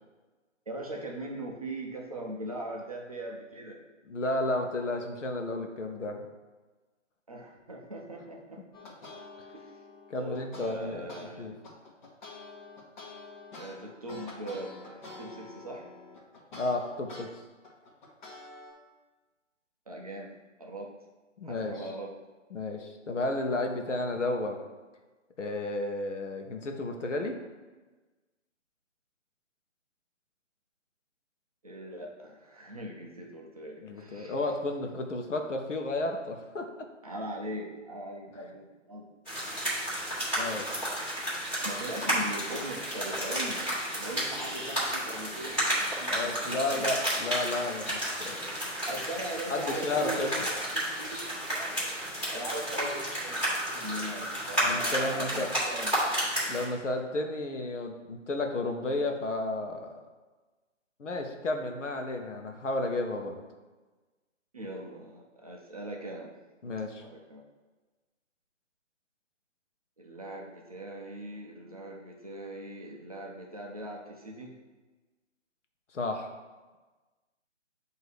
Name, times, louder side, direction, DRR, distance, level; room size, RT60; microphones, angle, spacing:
voice 1, 0.7-3.8 7.3-8.6 8.9-9.0 9.5-9.8 10.2-11.7 13.5-15.9 19.9-20.3 20.6-20.9 21.4-22.1 31.6-34.4 37.0-39.1 41.6-46.9 48.9-52.0 52.3-55.9 64.5-66.3 67.0-67.4 70.0-74.6, right 1 dB, 30° right, -1 dB, 0.5 m, -40 dB
voice 2, 4.1-6.2 10.1-11.5 14.5-14.6 16.5-17.4 21.4-21.7 22.5-24.6 25.4-27.4 33.8-36.7 40.4-40.7 46.1-48.6 49.5-50.5 54.6-55.5 56.5-59.9 61.0-63.4 66.6-67.0 75.9-76.3, left 2 dB, 70° left, 4 dB, 0.9 m, -32 dB
sound 1, 8.7-11.3 11.6-17.3 17.6-18.7, left 3 dB, 35° left, 1.2 m, -47 dB
sound 2, 39.2-56.6, equal, 5° left, 1.4 m, -32 dB
7.6 x 2.8 x 4.7 m, 1.3 s
figure-of-eight pair, 145°, 38 cm